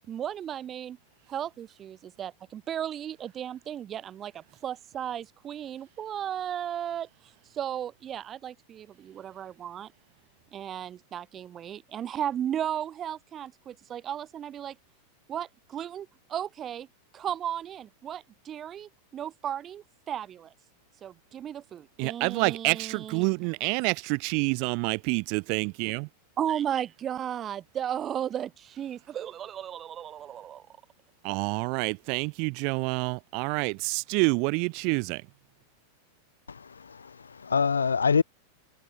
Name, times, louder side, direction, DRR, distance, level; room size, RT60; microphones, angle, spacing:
voice 1, 0.1-1.0 1.3-7.1 7.5-9.9 10.5-14.8 15.3-16.9 17.1-20.5 21.0-23.3 26.4-30.6, right 10 dB, 25° right, 2.1 m, -35 dB
voice 2, 22.0-26.1 31.2-35.2, right 36 dB, 45° right, 1.0 m, -28 dB
voice 3, 36.5-38.2, left 5 dB, 75° left, 2.3 m, -26 dB
figure-of-eight pair, 90°, 0 cm